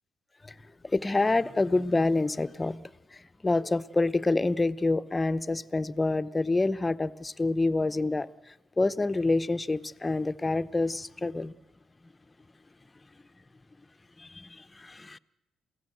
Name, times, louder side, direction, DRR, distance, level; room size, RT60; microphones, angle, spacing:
voice 1, 0.8-8.3 8.8-11.5 14.2-15.2, left 2 dB, 20° left, 0.7 m, -27 dB
28.0 x 16.5 x 7.9 m
cardioid pair, 90°, 0 cm